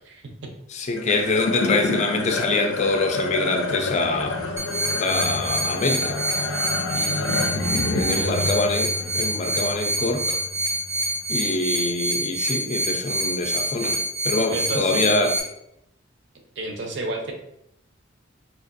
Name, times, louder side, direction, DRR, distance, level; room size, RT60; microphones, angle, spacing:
voice 1, 0.0-0.5 6.9-8.6 14.5-15.3 16.6-17.3, right 2 dB, 60° right, 0.6 m, -32 dB
voice 2, 0.7-4.4 5.0-6.2 7.8-10.4 11.3-15.3, left 2 dB, 35° left, 0.4 m, -25 dB
sound 1, 1.0-11.5, left 3 dB, 90° left, 0.5 m, -29 dB
sound 2, 4.6-15.4, right 1 dB, 15° right, 0.6 m, -26 dB
4.5 x 2.5 x 2.5 m
head